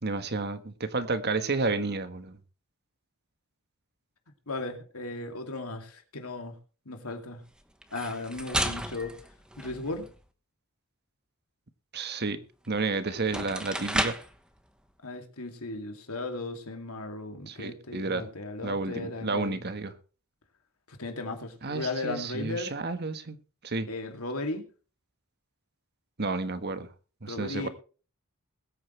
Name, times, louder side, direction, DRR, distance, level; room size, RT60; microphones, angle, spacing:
voice 1, 0.0-2.4 11.9-12.4 12.7-14.2 17.5-18.3 18.6-19.9 21.6-23.4 23.6-23.9 26.2-26.9 27.2-27.7, right 3 dB, 50° right, 1.4 m, -31 dB
voice 2, 4.5-6.6 6.9-7.4 7.9-9.1 9.6-10.1 15.0-19.6 20.9-22.8 23.9-24.6 27.3-27.7, left 2 dB, 85° left, 2.6 m, -36 dB
sound 1, 7.8-10.2 12.7-12.8 13.2-14.4, right 1 dB, 5° right, 1.2 m, -33 dB
21.5 x 8.8 x 3.3 m
head